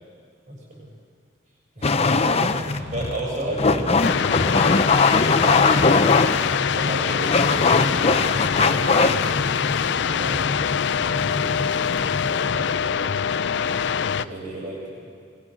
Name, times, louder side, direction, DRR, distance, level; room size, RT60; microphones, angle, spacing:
voice 1, 0.5-0.9 1.7-4.8 5.4-6.2 6.7-9.4 10.0-10.5 10.9-15.2, right 1 dB, 45° right, -3 dB, 6.5 m, -34 dB
sound 1, 1.8-12.9, left 3 dB, 35° left, 0.7 m, -22 dB
sound 2, 4.0-14.2, left 7 dB, 70° left, 0.5 m, -24 dB
22.5 x 21.5 x 6.3 m, 2.1 s
head